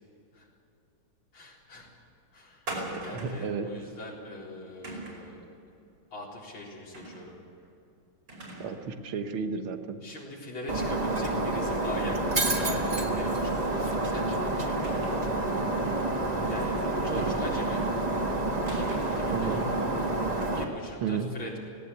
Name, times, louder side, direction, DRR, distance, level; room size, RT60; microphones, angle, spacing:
voice 1, 1.3-1.9 2.3-2.7 3.0-5.4 6.1-7.3 10.0-12.4 12.6-14.9 16.4-17.9 18.6-19.6 20.4-21.7, left 1 dB, 80° left, -3 dB, 4.9 m, -42 dB
sound 1, 2.7-3.5 4.8-5.3 6.9-7.3 7.6-7.7 8.3-8.8 9.2-9.3 10.9-11.1 11.4-11.5 12.6-13.2 14.8-15.3 17.2-17.7 18.7-19.3, right 1 dB, 70° right, 6.0 m, -40 dB
voice 2, 2.9-3.7 8.6-10.0 17.1-17.4 19.3-19.7 21.0-21.3, right 6 dB, 90° right, 7 dB, 2.1 m, -33 dB
Shatter, 10.7-20.6, right 2 dB, 20° right, 1.5 m, -28 dB
18.0 x 18.0 x 8.3 m, 2.7 s
omnidirectional pair, 2.2 m